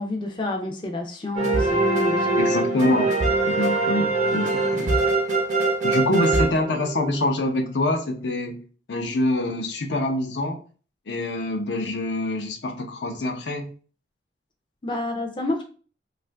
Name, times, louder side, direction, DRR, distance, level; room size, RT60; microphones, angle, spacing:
voice 1, 0.0-2.4 3.5-3.6 14.8-15.6, left 2 dB, 30° left, 3 dB, 0.4 m, -29 dB
sound 1, 1.4-7.3, right 2 dB, 45° right, 0.6 m, -22 dB
voice 2, 2.4-3.1 3.5-5.0 5.8-8.6 8.9-10.6 11.1-13.7, left 1 dB, 85° left, 4 dB, 0.6 m, -25 dB
2.6 x 2.4 x 3.2 m, 0.39 s
head